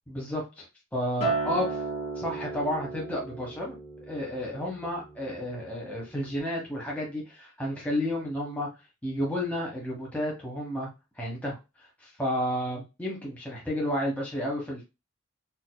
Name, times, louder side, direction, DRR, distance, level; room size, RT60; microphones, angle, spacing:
voice 1, 0.1-0.7 0.9-1.8 2.1-3.8 4.1-8.7 9.0-10.9 11.2-14.8, equal, 5° left, -4 dB, 1.0 m, -31 dB
Acoustic guitar, 1.2-5.6 6.0-6.4, right 3 dB, 30° left, 1.8 m, -35 dB
4.1 x 2.7 x 2.2 m, 0.26 s
head